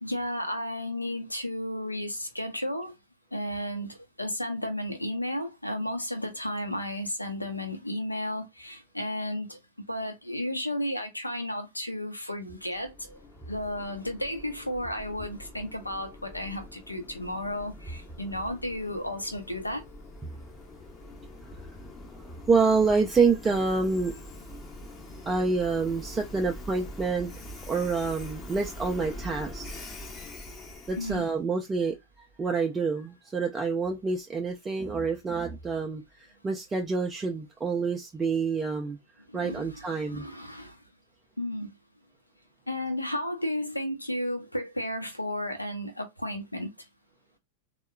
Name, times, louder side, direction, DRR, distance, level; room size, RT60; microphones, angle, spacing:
voice 1, 0.0-2.9 3.3-13.2 13.5-19.8 31.0-31.3 39.3-40.8 41.4-41.7 42.7-46.7, left 1 dB, 85° left, 0.6 m, -33 dB
Train, 12.6-31.4, left 1 dB, 25° left, 0.7 m, -44 dB
voice 2, 22.2-24.2 25.3-27.3 27.7-29.7 30.9-32.0 32.4-39.0 39.3-40.3, right 4 dB, 15° right, 0.4 m, -27 dB
3.6 x 2.1 x 2.2 m
figure-of-eight pair, 90°, 0 cm